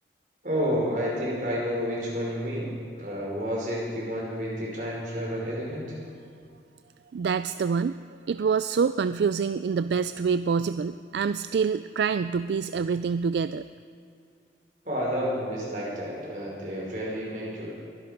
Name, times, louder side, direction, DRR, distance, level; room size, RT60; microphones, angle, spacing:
voice 1, 0.4-2.7 3.0-5.9 14.8-17.7, equal, 45° right, -5 dB, 5.3 m, -30 dB
voice 2, 7.1-8.0 8.3-13.6, right 6 dB, 75° right, 12 dB, 0.3 m, -26 dB
23.0 x 11.5 x 5.2 m, 2.3 s
head